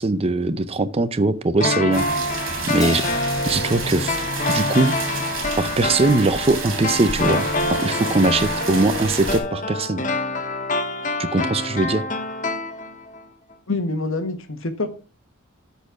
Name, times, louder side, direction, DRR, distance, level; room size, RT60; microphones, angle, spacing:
voice 1, 0.0-2.4 2.7-3.1 3.5-4.2 4.5-5.0 5.6-10.1 11.2-12.0, right 2 dB, 25° right, 0.5 m, -21 dB
sound 1, 1.6-13.2 13.5-13.6, left 2 dB, 35° left, 1.0 m, -27 dB
sound 2, 1.9-9.4, right 3 dB, 65° right, 3.1 m, -29 dB
Crash cymbal, 2.8-5.5, left 3 dB, 20° left, 1.6 m, -35 dB
voice 2, 13.7-14.9, left 2 dB, 65° left, 1.4 m, -26 dB
13.0 x 4.5 x 5.8 m
head